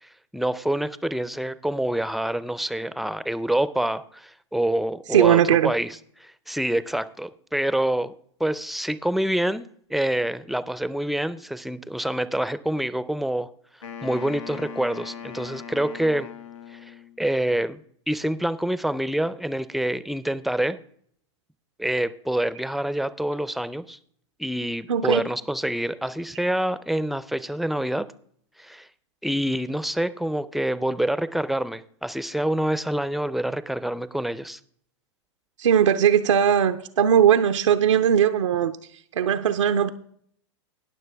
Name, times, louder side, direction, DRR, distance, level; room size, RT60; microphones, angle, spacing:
voice 1, 0.0-8.1 8.4-13.5 14.0-16.3 16.7-17.8 18.1-20.8 21.8-24.0 24.4-28.1 28.6-28.9 29.2-34.6, right 1 dB, ahead, 0.5 m, -26 dB
voice 2, 5.1-5.7 24.9-25.2 35.6-38.7 39.1-39.9, right 9 dB, 90° right, 0.6 m, -19 dB
Wind instrument woodwind instrument, 13.8-17.3, left 7 dB, 85° left, 1.1 m, -39 dB
19.5 x 6.6 x 3.4 m
hypercardioid pair, 110°, 15 cm